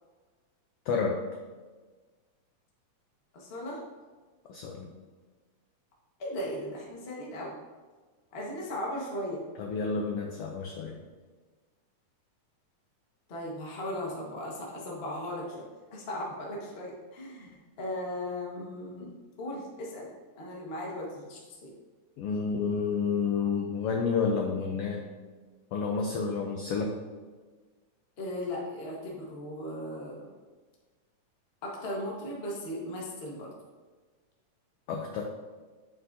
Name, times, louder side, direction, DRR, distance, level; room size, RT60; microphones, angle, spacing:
voice 1, 0.9-1.2 4.5-4.9 9.6-11.0 22.2-25.0 25.7-26.9 34.9-35.2, left 5 dB, 80° left, 1 dB, 1.3 m, -30 dB
voice 2, 3.3-3.8 6.2-7.5 8.3-9.4 13.3-15.6 15.9-17.5 17.8-19.1 19.4-20.1 20.4-21.7 28.2-30.3 31.6-33.5, left 1 dB, 45° left, -3 dB, 0.8 m, -37 dB
8.3 x 7.6 x 2.7 m, 1.4 s
omnidirectional pair, 3.5 m